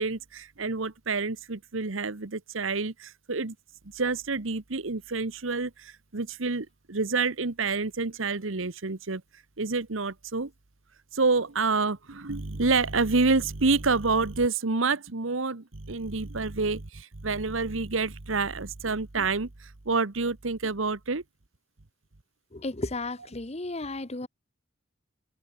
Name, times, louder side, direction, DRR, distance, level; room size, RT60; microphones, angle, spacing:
voice 1, 0.0-3.5 3.9-9.2 9.6-10.5 11.1-21.2, right 4 dB, 75° right, 1.3 m, -28 dB
voice 2, 22.6-24.3, left 2 dB, 30° left, 1.2 m, -33 dB
head